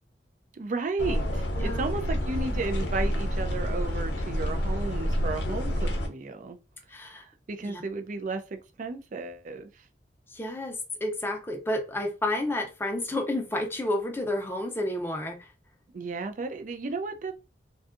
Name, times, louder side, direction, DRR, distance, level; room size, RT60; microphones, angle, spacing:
voice 1, 0.5-6.6 7.0-9.9 15.9-17.3, right 3 dB, 45° right, 0.4 m, -34 dB
sound 1, 1.0-6.1, equal, 75° left, 0.6 m, -28 dB
voice 2, 6.9-7.2 7.6-7.8 10.3-15.5, left 1 dB, 15° left, 0.5 m, -30 dB
2.6 x 2.3 x 2.4 m
head